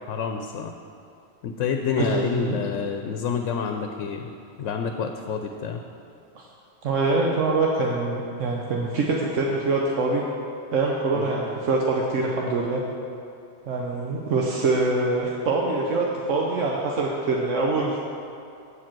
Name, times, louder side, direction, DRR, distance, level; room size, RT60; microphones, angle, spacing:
voice 1, 0.1-0.7 1.4-4.3 4.6-5.8 11.1-11.3, left 6 dB, 85° left, 5 dB, 1.0 m, -28 dB
voice 2, 2.0-2.7 6.3-6.5 6.8-10.2 10.7-12.8 13.7-18.1, right 3 dB, 80° right, -2 dB, 1.2 m, -24 dB
8.4 x 7.5 x 6.0 m, 2.6 s
omnidirectional pair, 1.3 m